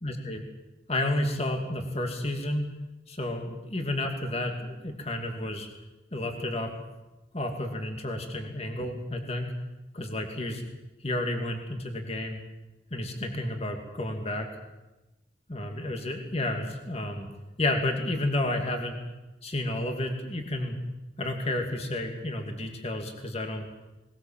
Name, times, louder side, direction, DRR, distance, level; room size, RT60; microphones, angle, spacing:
voice 1, 0.0-0.4 0.9-2.7 3.1-5.7 6.1-6.7 7.3-9.5 9.9-10.6 11.0-12.4 12.9-14.5 15.5-17.3 17.6-19.0 19.4-20.8 21.2-23.7, left 1 dB, 35° left, 4 dB, 2.6 m, -31 dB
21.0 x 20.5 x 7.5 m, 1.0 s
head